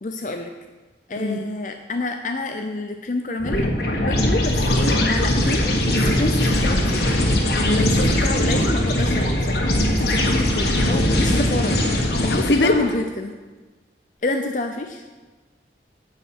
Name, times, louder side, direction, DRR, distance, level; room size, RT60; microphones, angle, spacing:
voice 1, 0.0-0.5 1.1-3.7 4.0-7.2 7.7-11.9 12.2-13.3 14.2-15.0, left 2 dB, 45° left, 5 dB, 0.6 m, -28 dB
sound 1, 3.4-12.9, left 1 dB, 60° left, 1.7 m, -20 dB
voice 2, 7.5-8.0 12.3-12.7, left 2 dB, 80° left, 7 dB, 1.0 m, -21 dB
10.5 x 4.9 x 7.9 m, 1.3 s
head